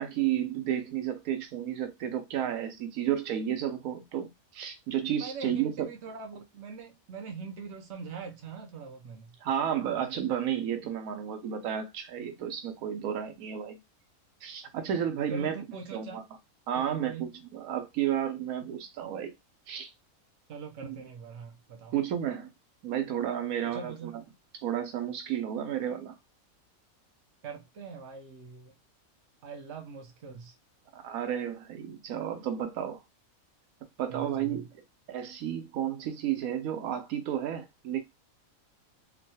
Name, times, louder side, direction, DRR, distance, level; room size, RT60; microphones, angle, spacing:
voice 1, 0.0-5.9 9.4-13.8 14.4-15.6 15.9-16.2 16.7-19.3 19.7-19.9 20.8-21.0 21.9-22.5 22.8-24.1 24.5-26.2 30.9-33.0 34.0-34.7 35.1-38.0, right 10 dB, 80° right, 1.0 m, -32 dB
voice 2, 5.2-9.3 15.3-16.2 16.8-17.3 20.5-21.9 23.6-24.3 27.4-28.7 29.4-30.5 34.1-34.6, right 5 dB, 60° right, 0.8 m, -42 dB
3.0 x 2.2 x 2.7 m
omnidirectional pair, 1.5 m